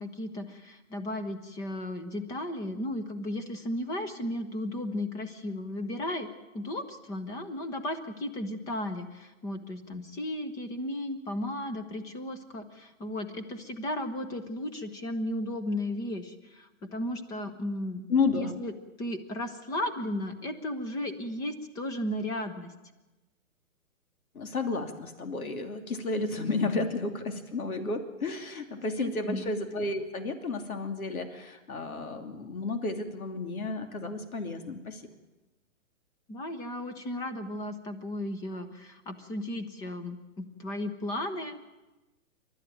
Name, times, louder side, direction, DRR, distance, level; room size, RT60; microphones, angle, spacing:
voice 1, 0.0-18.1 18.4-18.7 19.0-22.7 29.0-29.5 36.3-41.6, left 1 dB, 10° left, 12 dB, 0.7 m, -35 dB
voice 2, 18.1-18.6 24.3-35.0, left 3 dB, 85° left, 6 dB, 2.9 m, -32 dB
27.5 x 12.5 x 9.0 m, 1.1 s
hypercardioid pair, 155°, 42 cm